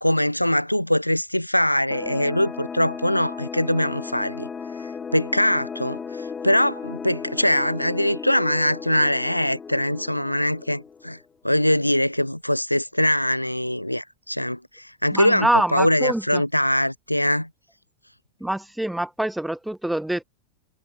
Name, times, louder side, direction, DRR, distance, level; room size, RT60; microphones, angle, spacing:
voice 1, 0.0-4.5 4.8-11.2 11.4-17.5, left 1 dB, 90° left, 0.4 m, -22 dB
sound 1, 1.9-11.2, left 6 dB, 15° left, 1.1 m, -35 dB
voice 2, 15.1-16.4 18.4-20.2, right 1 dB, 5° right, 0.7 m, -25 dB
figure-of-eight pair, 90°, 0 cm